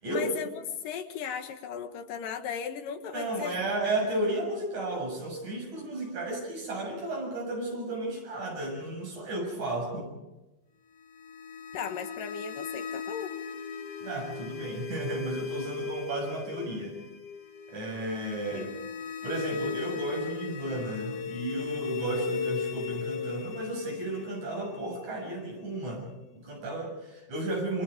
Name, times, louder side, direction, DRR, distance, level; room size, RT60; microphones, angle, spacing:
voice 1, 0.1-3.6 11.7-13.4 18.5-18.7, left 7 dB, 70° left, 6 dB, 3.1 m, -36 dB
voice 2, 3.1-10.1 14.0-17.0 17.7-18.7 19.2-27.8, right 1 dB, 55° right, 0 dB, 8.4 m, -33 dB
sound 1, 11.0-25.9, left 6 dB, 50° left, 2.2 m, -38 dB
29.0 x 23.5 x 5.1 m, 1.0 s
omnidirectional pair, 4.1 m